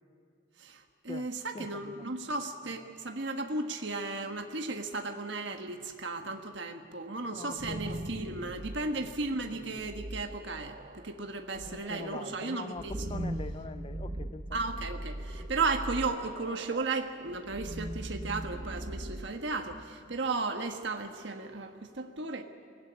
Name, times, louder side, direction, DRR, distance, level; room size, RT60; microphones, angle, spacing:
voice 1, 0.6-12.9 14.5-22.4, right 3 dB, 65° right, 5 dB, 1.5 m, -35 dB
voice 2, 1.5-2.1 7.3-7.9 8.8-9.1 11.6-14.6, left 3 dB, 30° left, 12 dB, 0.5 m, -43 dB
sound 1, 7.3-20.2, right 1 dB, 40° right, 0.9 m, -41 dB
23.5 x 16.5 x 9.8 m, 2.6 s
head